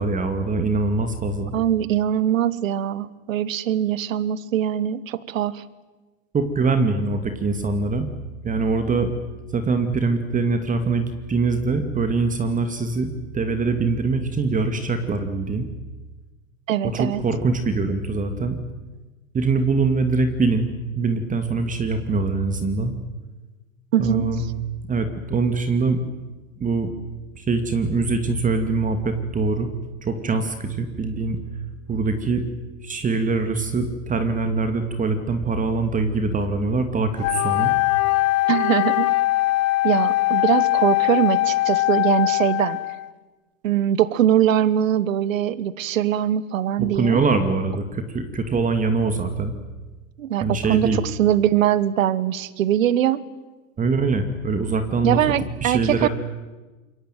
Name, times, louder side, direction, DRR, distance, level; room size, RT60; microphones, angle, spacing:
voice 1, 0.0-1.5 6.3-8.1 8.4-9.1 9.5-15.7 16.9-18.6 19.3-20.7 20.9-22.9 24.0-24.4 24.9-26.0 26.6-26.9 27.4-29.7 30.0-31.4 31.9-32.4 32.8-37.7 46.8-49.5 50.4-51.0 53.8-55.2 55.6-56.1, right 3 dB, 20° right, 8 dB, 2.4 m, -23 dB
voice 2, 1.5-5.6 16.7-17.2 23.9-24.3 38.5-39.1 39.8-42.8 43.6-47.2 50.2-53.2 55.0-56.1, right 11 dB, 70° right, 18 dB, 1.5 m, -22 dB
Wind instrument woodwind instrument, 37.2-43.1, left 19 dB, 35° left, 1.2 m, -21 dB
27.0 x 23.0 x 9.2 m, 1.2 s
hypercardioid pair, 110°, 41 cm